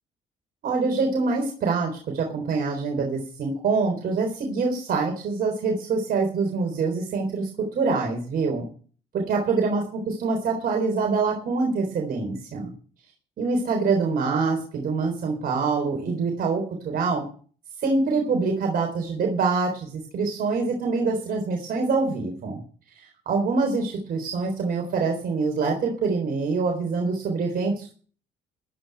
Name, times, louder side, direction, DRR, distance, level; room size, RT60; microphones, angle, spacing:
voice 1, 0.6-8.6 9.1-12.7 13.4-17.2 17.8-22.6 23.3-27.9, right 4 dB, 60° right, 1 dB, 4.0 m, -25 dB
14.5 x 5.9 x 9.0 m, 0.42 s
cardioid pair, 95°, 18 cm